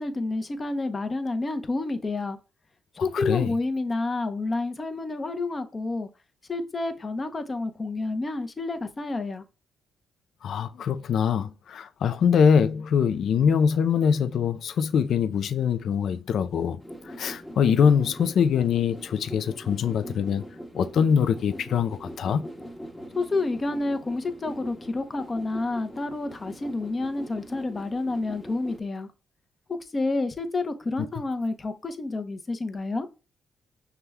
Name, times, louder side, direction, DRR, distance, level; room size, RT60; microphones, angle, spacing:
voice 1, 0.0-2.4 2.9-6.1 6.5-9.4 23.1-29.1 29.7-33.1, left 3 dB, 35° left, 0.7 m, -29 dB
voice 2, 3.0-3.5 10.4-16.8 17.0-20.4 20.7-22.4, left 7 dB, 70° left, 0.4 m, -23 dB
sound 1, 16.8-28.8, equal, 10° left, 0.9 m, -42 dB
5.7 x 2.2 x 3.4 m
cardioid pair, 65°, 0 cm